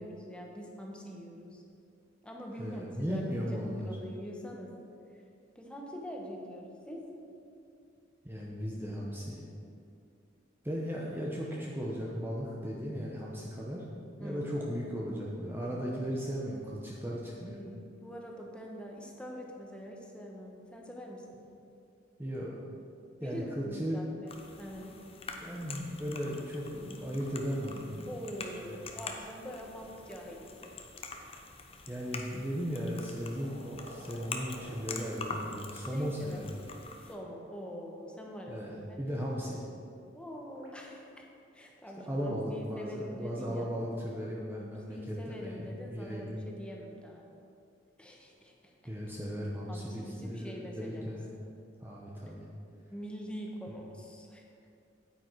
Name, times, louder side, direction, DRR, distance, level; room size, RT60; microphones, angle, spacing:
voice 1, 0.0-1.6 2.2-3.2 3.5-4.7 5.5-7.0 14.2-14.4 17.2-21.4 23.2-24.3 24.6-24.9 28.1-30.7 35.8-36.4 37.0-39.0 40.1-41.1 41.5-43.7 44.5-47.3 48.0-48.7 49.7-51.0 52.9-54.4, equal, 5° left, -1 dB, 1.2 m, -44 dB
voice 2, 2.6-3.9 8.2-9.4 10.6-13.8 14.2-17.6 22.2-22.6 23.2-24.0 24.8-24.9 25.4-28.1 28.7-28.8 31.9-36.6 38.5-39.6 42.1-46.4 48.8-51.3 51.8-52.4, equal, 10° right, -4 dB, 0.9 m, -36 dB
sound 1, 24.3-37.1, left 4 dB, 30° left, 0.8 m, -45 dB
sound 2, 30.9-31.2 33.0-37.4 39.5-40.7 41.7-42.0, equal, 80° right, 2.2 m, -53 dB
9.0 x 8.9 x 4.7 m, 2.5 s
head